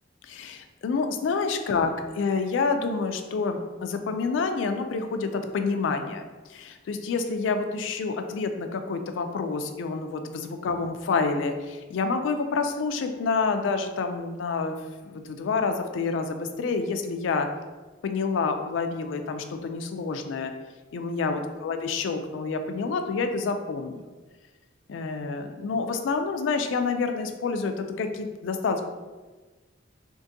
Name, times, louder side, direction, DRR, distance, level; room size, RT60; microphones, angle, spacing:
voice 1, 0.2-6.2 6.5-14.8 15.1-17.5 18.0-20.5 20.9-24.0 24.9-28.8, left 4 dB, 80° left, 6 dB, 0.3 m, -28 dB
3.7 x 2.5 x 2.6 m, 1.3 s
head